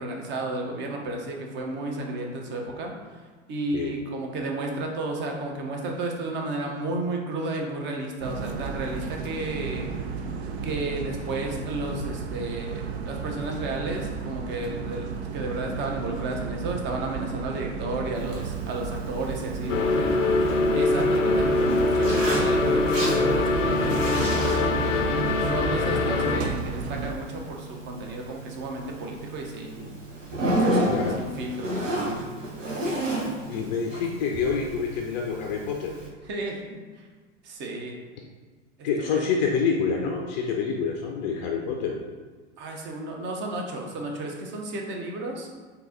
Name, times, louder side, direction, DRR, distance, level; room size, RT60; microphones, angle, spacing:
voice 1, 0.0-9.9 10.6-20.1 20.7-24.7 25.5-29.9 30.5-32.2 36.2-37.1 37.4-38.0 38.8-39.3 42.6-45.5, right 2 dB, 30° right, 1 dB, 0.7 m, -33 dB
sound 1, 8.2-27.1, right 5 dB, 60° right, 0.5 m, -33 dB
Zipper (clothing), 18.1-36.1, right 1 dB, 80° right, 1.0 m, -33 dB
sound 2, 19.7-26.4, left 3 dB, 90° left, 0.5 m, -23 dB
voice 2, 33.5-36.0 38.8-42.0, left 5 dB, 40° left, 1 dB, 0.5 m, -27 dB
3.8 x 2.7 x 3.9 m, 1.4 s
figure-of-eight pair, 90°, 37 cm